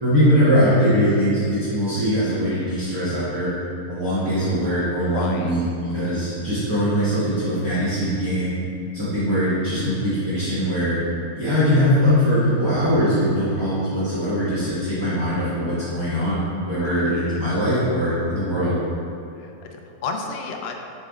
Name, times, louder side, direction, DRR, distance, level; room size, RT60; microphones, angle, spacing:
voice 1, 0.0-3.5 3.9-8.5 8.9-11.0 11.3-18.8, equal, 15° right, -13 dB, 1.2 m, -21 dB
voice 2, 5.1-5.5 16.8-17.4 19.4-20.7, left 4 dB, 80° left, 3 dB, 0.5 m, -32 dB
7.4 x 3.6 x 3.5 m, 2.6 s
omnidirectional pair, 1.8 m